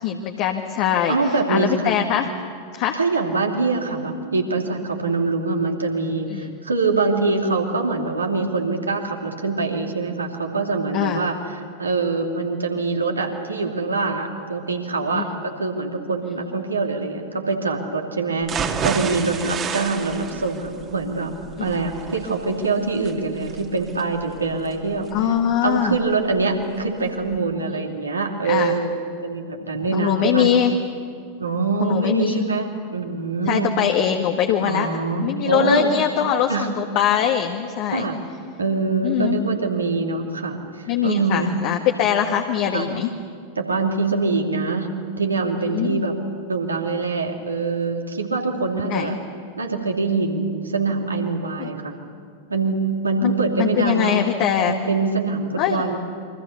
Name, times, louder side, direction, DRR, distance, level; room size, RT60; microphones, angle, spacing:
voice 1, 0.0-1.2 1.5-2.3 2.7-3.0 6.3-6.6 10.9-11.3 15.1-15.2 19.4-19.5 21.7-21.9 25.1-26.0 28.4-28.8 29.9-30.7 31.8-32.4 33.4-34.9 35.2-38.1 39.0-39.4 40.9-43.1 45.7-46.1 48.9-49.1 51.6-51.7 53.2-53.3 53.6-54.7 55.6-55.8, left 9 dB, 45° left, 3 dB, 1.6 m, -22 dB
voice 2, 1.1-1.9 2.9-21.3 21.6-25.3 25.6-28.9 29.2-30.5 31.4-33.7 34.6-36.0 36.5-36.7 37.9-38.2 38.6-40.7 41.0-41.6 42.7-42.9 43.6-44.9 45.2-46.1 46.5-49.2 49.6-51.9 52.5-54.2 54.7-56.0, right 3 dB, 75° right, 2 dB, 2.9 m, -24 dB
sound 1, 18.4-26.4 26.8-26.9 27.3-27.4, right 6 dB, 25° right, 2.2 m, -31 dB
28.5 x 24.5 x 6.9 m, 2.2 s
figure-of-eight pair, 90°, 0 cm